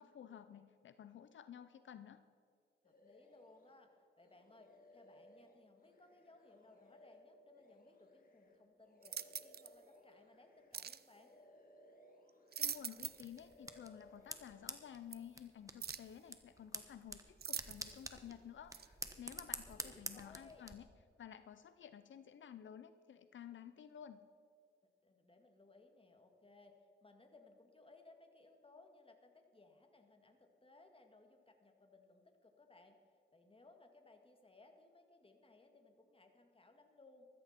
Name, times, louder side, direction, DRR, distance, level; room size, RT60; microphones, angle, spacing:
voice 1, 0.0-2.2 12.6-20.9 21.2-24.3, left 9 dB, 80° left, 11 dB, 0.5 m, -53 dB
sound 1, 2.8-3.8 4.2-10.8 11.1-13.1 13.3-14.8, left 1 dB, 50° left, 2.4 m, -64 dB
voice 2, 2.8-11.3 19.7-20.7 25.0-37.3, left 2 dB, 30° left, 4 dB, 2.0 m, -64 dB
sound 2, 9.0-9.7 10.7-11.1 12.3-13.4 13.7-13.8 15.1-15.2 15.8-16.2 17.4-18.1 18.7-18.9, right 7 dB, 55° right, 0.6 m, -44 dB
sound 3, 13.0-20.7, right 2 dB, 15° right, 1.2 m, -49 dB
14.0 x 14.0 x 4.4 m, 2.4 s
cardioid pair, 70°, 19 cm